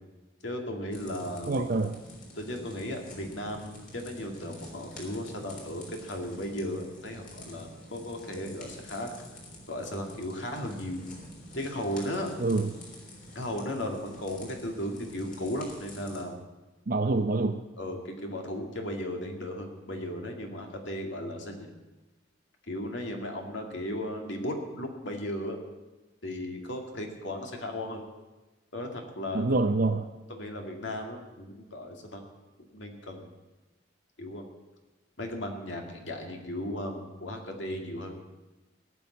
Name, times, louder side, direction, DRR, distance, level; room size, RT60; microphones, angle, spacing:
voice 1, 0.4-1.6 2.4-9.1 9.7-11.0 11.5-12.3 13.3-16.4 17.8-21.7 22.7-25.6 26.2-28.1 28.7-29.5 30.3-32.2 32.7-33.3 34.2-34.5 35.2-38.2, left 1 dB, 70° left, 2 dB, 2.3 m, -36 dB
sound 1, 0.9-16.2, left 1 dB, 45° left, 3.6 m, -47 dB
voice 2, 1.5-2.0 12.4-12.7 16.9-17.6 29.3-30.1, right 3 dB, 50° right, 4 dB, 0.6 m, -26 dB
18.0 x 6.3 x 9.5 m, 1.1 s
head